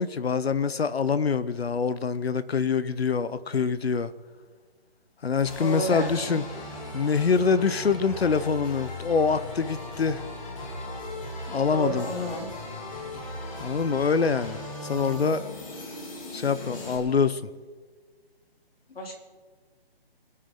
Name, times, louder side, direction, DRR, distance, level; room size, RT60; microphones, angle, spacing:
voice 1, 0.0-4.1 5.2-6.4 6.9-10.2 11.5-12.1 13.6-15.4 16.3-17.5, left 5 dB, 90° left, 1.0 m, -25 dB
sound 1, 5.5-17.0, left 1 dB, 35° left, 2.9 m, -38 dB
voice 2, 5.6-6.4 11.7-12.5 18.9-19.1, equal, 70° left, 3.8 m, -31 dB
24.0 x 10.0 x 3.8 m
hypercardioid pair, 165°, 30 cm